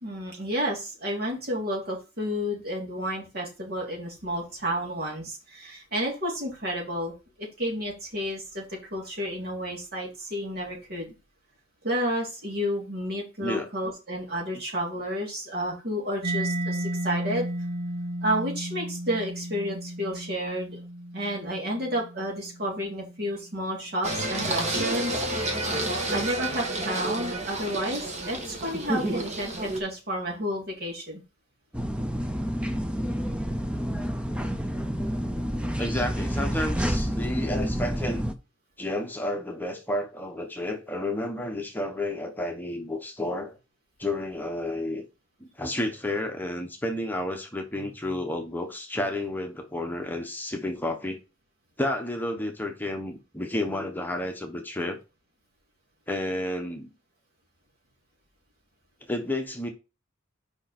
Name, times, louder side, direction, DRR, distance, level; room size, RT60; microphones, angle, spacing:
voice 1, 0.0-7.1 7.4-11.1 11.8-17.5 18.2-20.8 21.1-25.2 26.1-31.2, equal, 50° right, 2.9 m, -31 dB
Mallet percussion, 16.2-23.7, right 1 dB, 80° right, 2.7 m, -34 dB
Singing, 24.0-29.8, right 1 dB, 35° right, 1.4 m, -30 dB
sound 1, 31.7-38.3, equal, 5° right, 0.7 m, -29 dB
voice 2, 35.8-38.3 38.8-43.5 44.0-45.1 45.4-51.2 51.8-55.0 56.1-56.9 59.1-59.7, left 1 dB, 10° left, 1.1 m, -31 dB
5.2 x 4.8 x 5.9 m
head